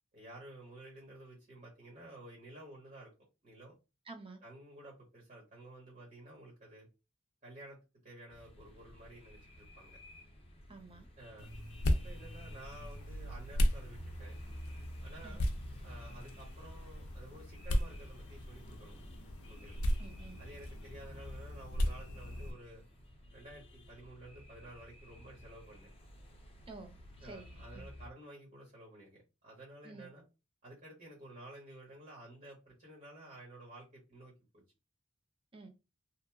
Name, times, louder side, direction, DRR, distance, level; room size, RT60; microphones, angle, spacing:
voice 1, 0.1-3.1 3.4-3.7 4.4-6.9 7.4-10.0 11.2-11.5 11.9-14.4 15.0-15.4 15.8-19.0 19.5-19.8 20.4-22.8 23.3-25.9 27.2-30.2 30.6-34.6, right 1 dB, 40° right, 1.2 m, -53 dB
voice 2, 4.1-4.4 10.7-11.1 15.2-15.4 20.0-20.4 26.7-26.9 27.2-27.9 29.8-30.1 35.5-35.7, right 3 dB, 25° right, 0.5 m, -50 dB
sound 1, 8.3-28.1, left 1 dB, 25° left, 0.6 m, -55 dB
sound 2, 11.4-22.5, equal, 85° left, 0.5 m, -36 dB
2.8 x 2.4 x 2.3 m
head